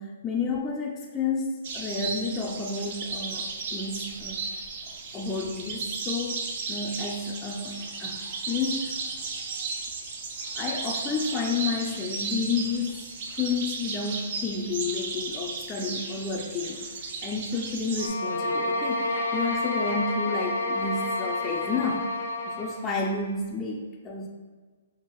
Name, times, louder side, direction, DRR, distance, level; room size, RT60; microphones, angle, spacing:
voice 1, 0.0-4.4 5.1-6.4 6.7-8.9 10.5-13.0 13.3-16.9 17.2-22.1 22.5-24.3, left 4 dB, 20° left, -1 dB, 0.3 m, -31 dB
sound 1, 1.6-18.1, right 4 dB, 50° right, 0.5 m, -35 dB
sound 2, 18.0-22.8, left 1 dB, 80° left, 0.5 m, -29 dB
5.2 x 2.4 x 3.1 m, 1.4 s
hypercardioid pair, 140°, 0 cm